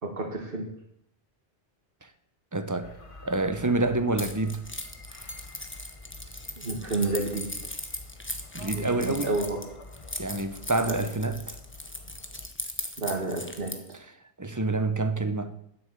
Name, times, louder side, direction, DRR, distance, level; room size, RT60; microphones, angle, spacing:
voice 1, 0.0-0.7 6.6-7.5 8.7-9.7 10.9-11.0 13.0-13.8, right 2 dB, 60° right, 2.1 m, -30 dB
voice 2, 2.5-2.9 3.2-4.7 8.5-9.3 10.2-11.6 14.4-15.6, right 2 dB, 20° right, 0.8 m, -27 dB
sound 1, 2.8-12.5, left 2 dB, 30° left, 1.1 m, -47 dB
Keys jangling, 4.2-13.9, left 1 dB, 10° left, 1.1 m, -38 dB
10.0 x 8.4 x 8.1 m
omnidirectional pair, 1.1 m